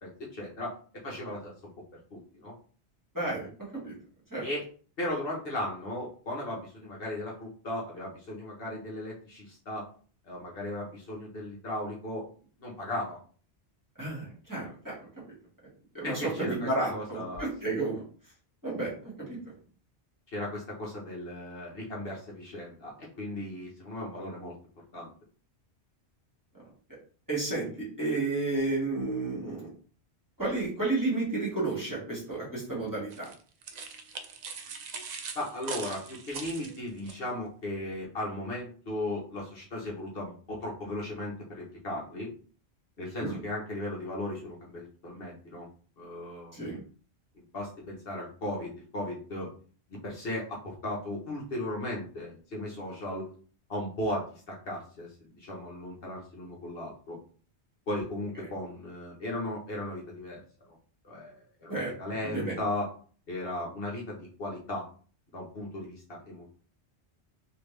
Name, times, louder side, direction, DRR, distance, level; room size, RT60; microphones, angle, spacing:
voice 1, 0.0-0.7 1.0-1.5 2.1-2.5 4.4-4.7 5.0-9.9 10.2-12.3 12.6-13.2 16.0-17.5 20.3-24.5 24.9-25.1 35.3-42.3 43.0-45.7 46.0-46.6 47.3-49.5 50.0-53.3 53.7-57.2 57.9-60.4 60.7-60.8 61.0-62.9 63.3-64.9 65.3-66.5, left 1 dB, 60° left, -3 dB, 1.2 m, -36 dB
voice 2, 3.1-3.5 3.8-4.0 4.3-4.4 14.0-14.9 15.9-18.0 18.6-18.9 19.3-19.4 27.3-29.7 30.4-33.3 43.2-43.4 46.5-46.8 61.7-61.9 62.2-62.6, right 2 dB, 15° right, -5 dB, 1.7 m, -31 dB
sound 1, 33.1-37.2, right 5 dB, 55° right, 0.5 m, -41 dB
3.3 x 2.8 x 3.2 m, 0.42 s
omnidirectional pair, 1.1 m